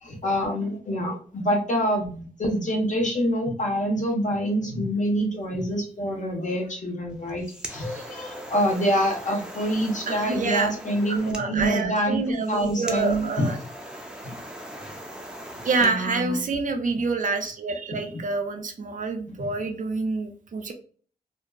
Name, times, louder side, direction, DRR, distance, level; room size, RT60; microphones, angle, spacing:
voice 1, 0.0-12.2 12.5-13.5 14.2-14.3 15.8-16.4 19.4-19.5, equal, 50° left, 1 dB, 0.9 m, -26 dB
sound 1, 7.1-15.9, right 1 dB, 5° right, 0.6 m, -40 dB
voice 2, 10.1-10.7 11.1-13.6 15.6-20.7, right 3 dB, 55° right, 5 dB, 0.5 m, -27 dB
2.6 x 2.3 x 2.2 m, 0.43 s
supercardioid pair, 45°, 16 cm